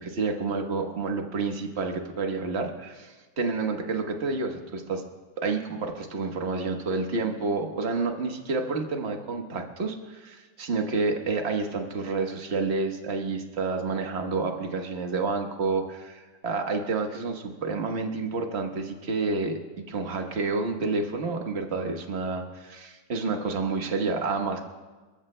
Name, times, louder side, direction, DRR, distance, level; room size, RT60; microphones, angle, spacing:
voice 1, 0.0-5.0 5.4-24.6, right 4 dB, 40° right, 3 dB, 1.4 m, -29 dB
28.0 x 14.0 x 2.2 m, 1.3 s
omnidirectional pair, 1.8 m